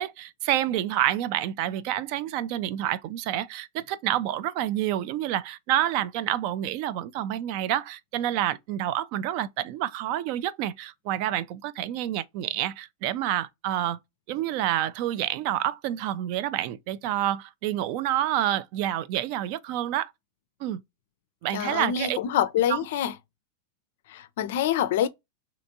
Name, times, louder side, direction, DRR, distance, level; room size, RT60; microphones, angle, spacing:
voice 1, 0.0-14.0 14.3-20.1 20.6-20.8 21.4-22.2 22.7-22.8, right 12 dB, 45° right, 0.3 m, -28 dB
voice 2, 21.5-23.1 24.1-25.1, left 10 dB, 55° left, 0.4 m, -26 dB
3.3 x 2.8 x 2.6 m
figure-of-eight pair, 90°, 0 cm